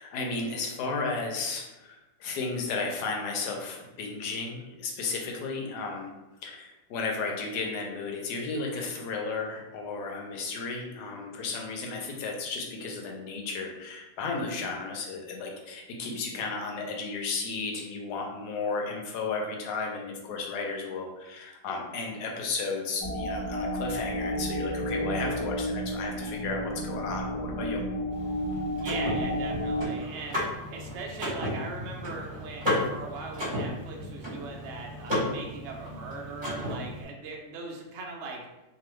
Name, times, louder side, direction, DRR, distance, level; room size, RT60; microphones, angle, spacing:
voice 1, 0.0-6.1 6.4-27.8, left 4 dB, 80° left, 1 dB, 1.2 m, -34 dB
sound 1, 23.0-29.9, equal, 35° left, 0.5 m, -31 dB
Car / Mechanisms, 28.1-37.0, left 1 dB, 35° right, 1.1 m, -34 dB
voice 2, 28.8-30.4 30.7-38.5, right 3 dB, 70° right, 0 dB, 0.7 m, -39 dB
2.9 x 2.3 x 3.1 m, 1.0 s
omnidirectional pair, 1.8 m